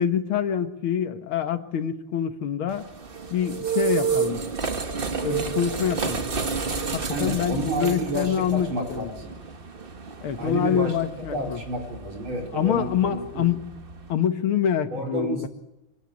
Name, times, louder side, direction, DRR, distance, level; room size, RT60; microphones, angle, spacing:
voice 1, 0.0-2.8 3.3-4.4 5.2-6.2 6.9-9.1 10.2-11.6 12.5-13.6 14.1-15.5, left 9 dB, 85° left, 9 dB, 2.2 m, -26 dB
sound 1, 2.7-14.1, right 5 dB, 30° right, 1.3 m, -31 dB
voice 2, 7.1-9.3 10.4-11.0 11.3-13.5 14.9-15.5, right 1 dB, 75° right, 1 dB, 5.3 m, -30 dB
24.0 x 16.5 x 8.5 m, 0.92 s
omnidirectional pair, 2.3 m